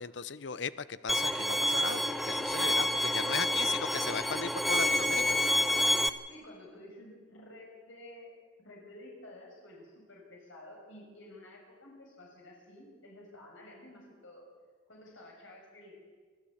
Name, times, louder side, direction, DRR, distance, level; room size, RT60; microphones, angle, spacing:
voice 1, 0.0-5.4, left 5 dB, 65° left, 16 dB, 0.7 m, -37 dB
Bowed string instrument, 1.1-6.1, left 1 dB, ahead, 0.7 m, -28 dB
voice 2, 3.3-3.7 6.3-14.4 14.9-15.9, left 1 dB, 90° left, -1 dB, 6.2 m, -52 dB
25.0 x 14.5 x 8.6 m, 1.5 s
head